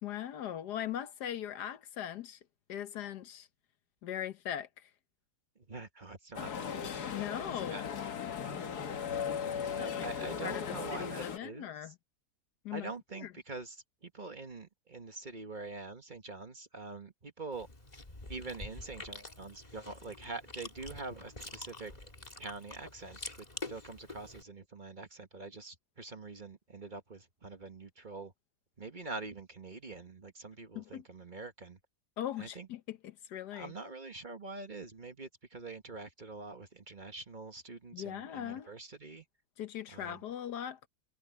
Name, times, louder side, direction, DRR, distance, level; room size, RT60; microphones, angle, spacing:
voice 1, 0.0-2.4 2.7-3.5 4.0-4.9 7.1-7.9 9.6-10.1 10.4-12.0 12.6-13.3 30.7-31.0 32.2-33.7 37.9-38.7 39.6-40.8, left 10 dB, 90° left, 1.6 m, -40 dB
voice 2, 5.6-6.8 7.6-7.8 8.2-8.7 9.4-11.9 12.7-17.7 18.3-21.9 22.4-28.3 28.8-31.8 32.4-32.7 33.5-39.2 39.9-40.2, right 3 dB, 30° right, 1.4 m, -45 dB
sound 1, 6.4-11.4, left 7 dB, 75° left, 1.9 m, -37 dB
Chewing mastication, 17.5-24.4, left 2 dB, 25° left, 2.5 m, -47 dB
omnidirectional pair, 1.7 m